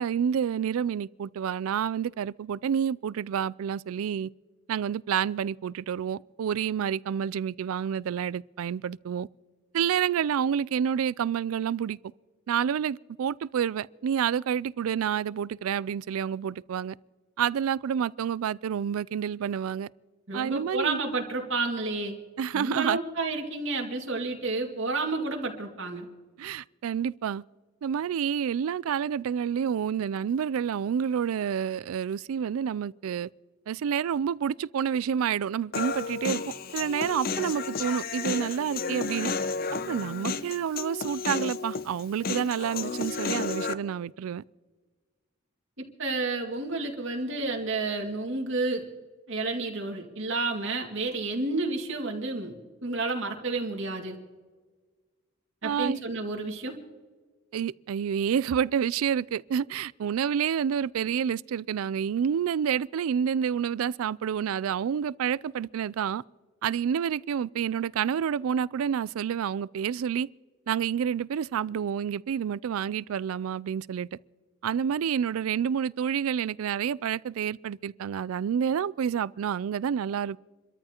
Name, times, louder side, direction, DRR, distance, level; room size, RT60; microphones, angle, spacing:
voice 1, 0.0-4.3 4.7-9.3 9.7-12.0 12.5-16.9 17.4-19.9 20.3-21.0 22.4-23.0 26.4-27.4 27.8-33.3 33.7-36.4 36.7-39.3 39.9-44.4 55.6-56.0 57.5-66.2 66.6-70.3 70.7-74.1 74.6-80.4, right 8 dB, 80° right, 0.3 m, -29 dB
voice 2, 20.3-22.2 22.5-26.1 45.8-48.8 49.3-52.5 52.8-54.2 55.6-56.8, right 3 dB, 60° right, 2.2 m, -30 dB
Human voice, 35.7-43.7, left 4 dB, 45° left, 0.6 m, -32 dB
28.5 x 13.5 x 2.9 m
head